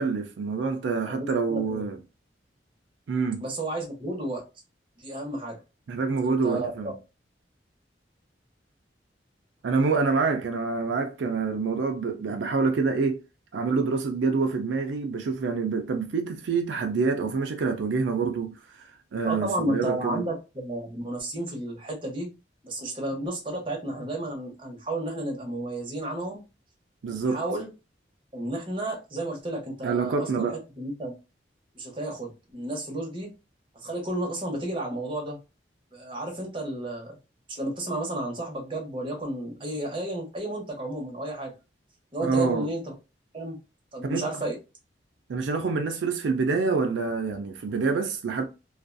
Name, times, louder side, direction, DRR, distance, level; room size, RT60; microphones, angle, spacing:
voice 1, 0.0-2.0 3.1-3.4 5.9-6.9 9.6-13.2 13.5-20.2 27.0-27.4 29.8-30.6 42.2-42.7 44.0-44.3 45.3-48.4, right 4 dB, 85° right, 0.4 m, -27 dB
voice 2, 1.1-1.8 3.4-4.4 5.0-5.6 6.2-6.9 19.2-22.3 22.6-26.4 27.1-27.7 28.3-30.5 30.8-31.1 31.7-33.3 33.8-35.4 35.9-37.2 37.5-41.5 42.1-42.9 43.3-43.6 43.9-44.6, right 1 dB, 25° right, 0.9 m, -32 dB
2.4 x 2.2 x 2.5 m
head